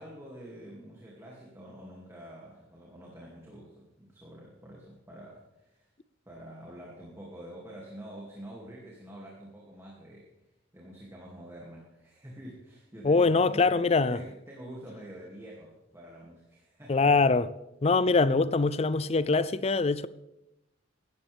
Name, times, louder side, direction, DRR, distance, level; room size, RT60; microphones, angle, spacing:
voice 1, 0.0-5.9 6.3-10.3 10.7-13.8 14.1-17.3 18.1-18.2, right 1 dB, 15° right, 2.6 m, -47 dB
voice 2, 13.0-14.2 16.9-17.5 17.8-20.1, left 4 dB, 30° left, 0.5 m, -23 dB
18.0 x 14.0 x 3.5 m
head